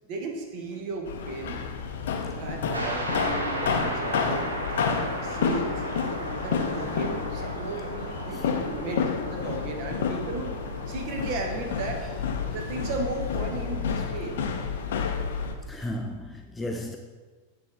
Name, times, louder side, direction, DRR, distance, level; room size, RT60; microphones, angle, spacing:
voice 1, 0.1-1.7 2.3-4.5 4.8-5.8 6.4-10.6 10.9-12.1 12.5-14.4, right 3 dB, 45° right, 2 dB, 0.9 m, -35 dB
sound 1, 1.1-15.5, left 5 dB, 60° left, 0.5 m, -30 dB
sound 2, 2.7-15.3, equal, 80° right, 0.8 m, -37 dB
voice 2, 12.0-12.7 15.6-17.0, left 1 dB, 10° left, 3 dB, 0.4 m, -37 dB
8.0 x 3.5 x 3.5 m, 1.3 s
figure-of-eight pair, 90°, 0 cm